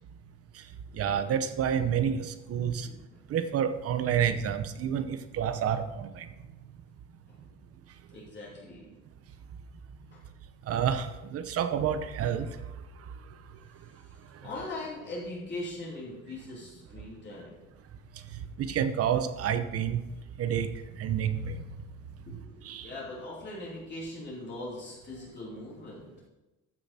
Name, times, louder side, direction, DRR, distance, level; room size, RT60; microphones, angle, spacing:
voice 1, 0.9-2.9 3.3-6.3 10.7-12.5 18.6-20.0 20.4-20.7 21.0-21.6 22.6-22.9, right 8 dB, 50° right, 10 dB, 0.9 m, -29 dB
voice 2, 2.9-3.2 7.3-7.4 8.1-8.9 10.1-10.2 14.4-17.5 22.3-26.0, left 2 dB, 35° left, -6 dB, 3.1 m, -40 dB
13.5 x 6.8 x 4.3 m, 1.1 s
cardioid pair, 155°, 30 cm